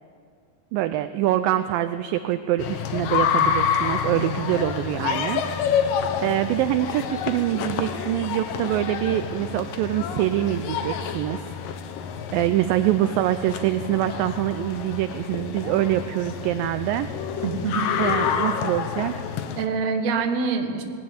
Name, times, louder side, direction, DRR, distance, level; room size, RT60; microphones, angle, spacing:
voice 1, 0.7-5.4 5.8-11.6 12.3-17.1 18.0-19.2, right 13 dB, 80° right, 10 dB, 2.1 m, -25 dB
sound 1, 2.6-19.7, left 7 dB, 70° left, 2.5 m, -28 dB
voice 2, 17.4-17.9 19.6-20.8, right 5 dB, 55° right, 4 dB, 2.3 m, -25 dB
20.0 x 17.0 x 8.6 m, 2.3 s
omnidirectional pair, 4.6 m